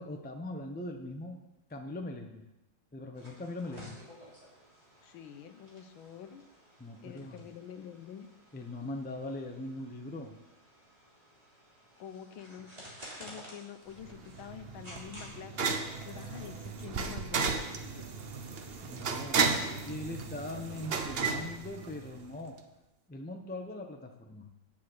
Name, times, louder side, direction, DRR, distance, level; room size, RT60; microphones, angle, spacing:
voice 1, 0.0-2.4 2.9-4.0 6.8-7.4 8.5-10.4 18.8-22.6 23.1-24.5, left 2 dB, 15° left, 3 dB, 0.3 m, -41 dB
sound 1, 3.1-16.6, equal, 20° right, 3.3 m, -53 dB
voice 2, 5.0-6.4 7.0-8.3 12.0-12.7 13.2-15.7 16.0-18.1, left 8 dB, 80° left, 9 dB, 1.6 m, -47 dB
sound 2, 14.0-22.3, right 5 dB, 75° right, 0.5 m, -34 dB
8.8 x 7.5 x 7.9 m, 1.0 s
omnidirectional pair, 2.2 m